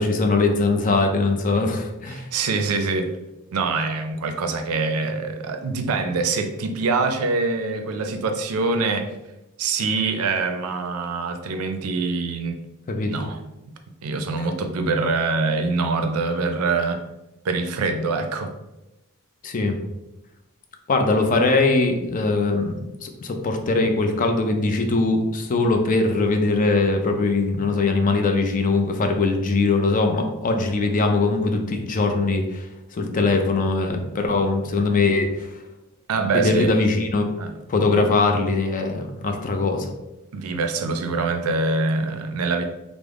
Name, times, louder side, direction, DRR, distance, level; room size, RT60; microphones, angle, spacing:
voice 1, 0.0-2.2 12.9-13.1 14.4-14.5 19.4-19.8 20.9-32.7 32.9-35.5 36.3-37.3 37.7-39.9, left 3 dB, 35° left, 4 dB, 0.4 m, -21 dB
voice 2, 2.1-3.1 3.5-9.1 9.6-12.6 13.1-13.4 14.0-17.0 17.4-18.5 36.1-36.8 37.4-37.5 40.3-42.6, right 3 dB, 75° right, 7 dB, 0.4 m, -24 dB
3.4 x 2.0 x 3.5 m, 0.96 s
head